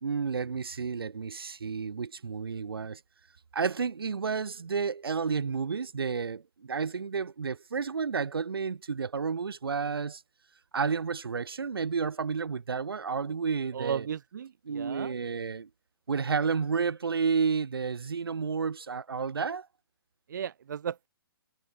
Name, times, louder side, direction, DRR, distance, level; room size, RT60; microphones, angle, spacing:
voice 1, 0.0-3.0 3.5-10.2 10.7-14.1 14.6-15.7 16.1-19.7, right 5 dB, 85° right, 1.6 m, -31 dB
voice 2, 13.7-15.1 20.3-21.1, right 8 dB, 55° right, 0.4 m, -35 dB
hypercardioid pair, 170°, 12 cm